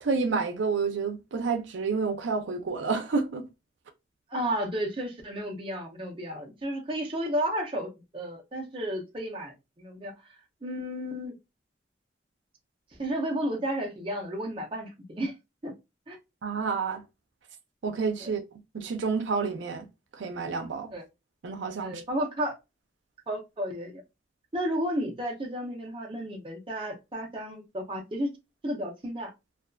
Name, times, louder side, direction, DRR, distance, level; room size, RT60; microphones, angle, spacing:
voice 1, 0.0-3.4 16.4-17.0 17.8-18.4 18.7-19.9 20.1-20.9 21.4-22.0, right 4 dB, 90° right, 0.5 m, -29 dB
voice 2, 4.3-10.1 10.6-11.4 13.0-15.3 15.6-15.7 16.1-16.2 18.2-18.3 20.9-21.0 21.8-22.5 23.3-24.0 24.5-28.3 28.6-29.3, equal, 30° right, 0.6 m, -32 dB
2.5 x 2.4 x 2.2 m
head